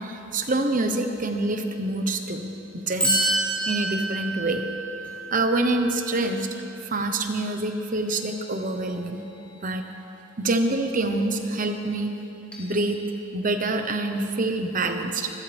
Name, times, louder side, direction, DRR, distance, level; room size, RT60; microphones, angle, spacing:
voice 1, 0.0-3.2 3.7-4.6 5.3-6.5 6.8-9.2 9.6-9.9 10.4-12.2 12.6-13.0 13.3-15.3, right 2 dB, 40° right, 6 dB, 1.0 m, -26 dB
sound 1, 3.0-7.0 8.1-8.9 9.2-9.6 12.5-13.0, right 1 dB, 5° left, 3.8 m, -30 dB
25.5 x 14.5 x 3.5 m, 2.8 s
head